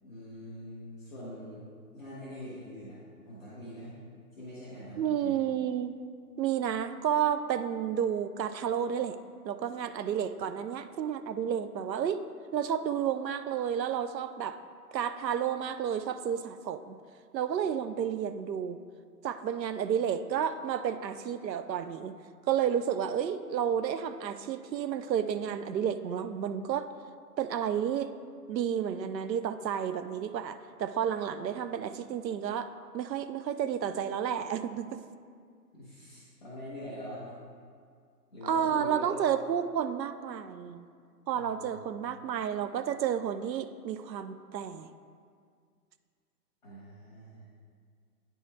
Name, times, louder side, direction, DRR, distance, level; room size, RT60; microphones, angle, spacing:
voice 1, 0.0-1.6 1.9-3.9 4.3-5.3 35.7-37.3 38.3-39.2 41.3-41.7 46.6-47.5, equal, ahead, -13 dB, 0.7 m, -44 dB
voice 2, 5.0-6.0 6.4-9.2 9.4-12.2 12.5-14.6 14.9-17.0 17.3-18.8 19.2-22.2 22.5-26.9 27.4-28.1 28.5-35.0 38.4-40.9 41.3-44.9, right 8 dB, 85° right, 10 dB, 0.6 m, -31 dB
9.3 x 3.6 x 4.3 m, 2.1 s
hypercardioid pair, 160°, 49 cm